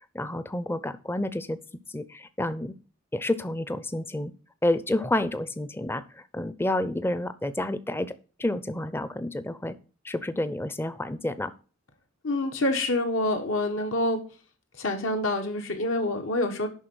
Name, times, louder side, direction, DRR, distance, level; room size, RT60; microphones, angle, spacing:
voice 1, 0.1-1.6 1.9-2.8 3.1-4.3 4.6-8.1 8.4-9.8 10.0-11.5, left 1 dB, 10° left, 13 dB, 0.5 m, -29 dB
voice 2, 12.2-14.2 14.8-16.7, left 2 dB, 75° left, 4 dB, 1.5 m, -27 dB
11.0 x 4.0 x 6.3 m, 0.37 s
head